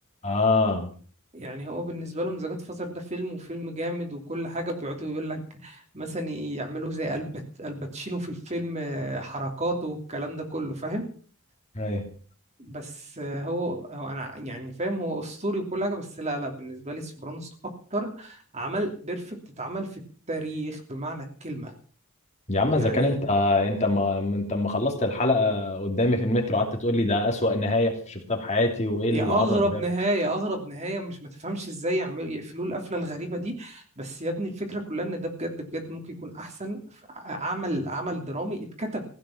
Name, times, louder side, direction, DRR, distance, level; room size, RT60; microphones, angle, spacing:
voice 1, 0.2-0.9 11.7-12.1 22.5-29.9, left 2 dB, 30° left, 2 dB, 2.8 m, -24 dB
voice 2, 1.3-11.1 12.6-17.5 17.9-20.0 20.3-21.7 22.7-23.2 29.1-36.8 37.1-39.0, right 1 dB, 30° right, 3 dB, 3.0 m, -31 dB
16.0 x 9.3 x 7.3 m, 0.43 s
head